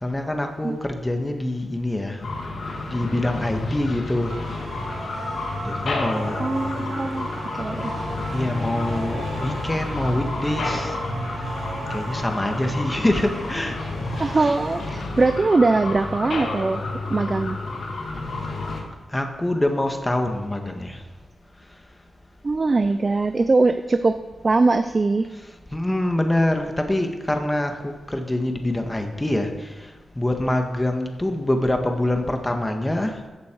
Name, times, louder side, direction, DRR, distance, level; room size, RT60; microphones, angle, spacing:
voice 1, 0.0-2.2 2.9-4.4 5.6-6.4 8.3-11.0 11.9-13.8 14.1-14.6 19.1-21.0 25.7-29.7 30.2-33.2, left 1 dB, 15° left, 4 dB, 1.9 m, -25 dB
sound 1, 2.2-18.8, left 2 dB, 70° left, 2.2 m, -30 dB
sound 2, 4.2-14.9, right 2 dB, 75° right, 3.7 m, -37 dB
voice 2, 6.4-7.9 14.2-16.8 17.1-17.6 22.4-24.2 24.4-25.3, right 3 dB, 40° right, 10 dB, 0.6 m, -21 dB
15.0 x 6.9 x 4.8 m, 1.3 s
cardioid pair, 50°, 0 cm